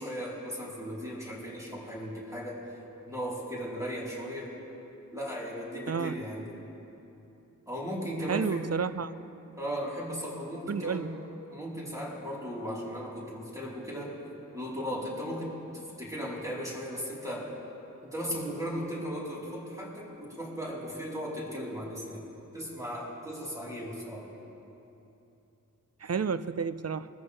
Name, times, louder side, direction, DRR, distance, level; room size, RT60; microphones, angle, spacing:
voice 1, 0.0-2.6 3.1-4.5 5.1-6.5 7.7-8.7 9.6-11.1 11.5-14.1 14.5-17.5 18.0-22.2 22.5-24.3, equal, 10° right, -6 dB, 3.8 m, -36 dB
voice 2, 5.9-6.2 8.3-9.1 10.7-11.1 26.0-27.1, right 6 dB, 50° right, 14 dB, 0.5 m, -31 dB
21.5 x 14.0 x 3.3 m, 2.9 s
wide cardioid pair, 60°, 33 cm